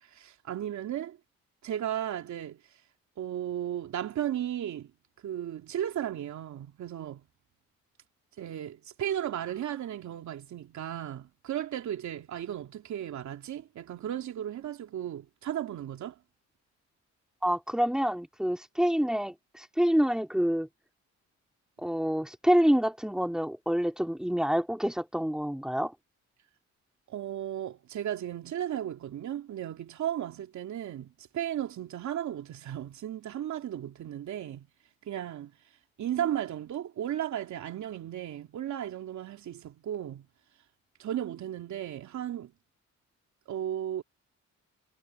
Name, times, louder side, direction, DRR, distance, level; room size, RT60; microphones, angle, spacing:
voice 1, 0.1-1.2 1.6-2.6 3.2-4.9 5.2-7.2 8.4-16.1 27.1-34.7 35.1-35.5 36.0-40.3 41.0-42.5 43.5-44.0, right 11 dB, 70° right, 3.0 m, -35 dB
voice 2, 17.4-20.7 21.8-25.9, equal, ahead, 2.9 m, -27 dB
cardioid pair, 90°, 30 cm